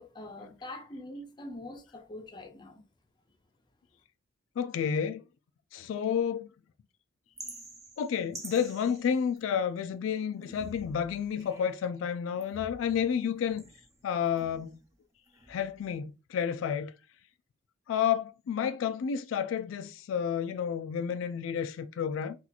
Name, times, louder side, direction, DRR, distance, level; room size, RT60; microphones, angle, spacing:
voice 1, 0.0-2.8, left 1 dB, 25° left, 0.6 m, -44 dB
voice 2, 4.6-5.2 5.7-6.5 8.0-13.6 14.0-14.8 15.5-16.9 17.9-22.4, left 7 dB, 80° left, 0.3 m, -30 dB
sound 1, 7.4-9.8 10.3-11.9 12.4-14.9 15.3-15.9, right 1 dB, 15° right, 0.6 m, -49 dB
2.9 x 2.4 x 3.9 m
head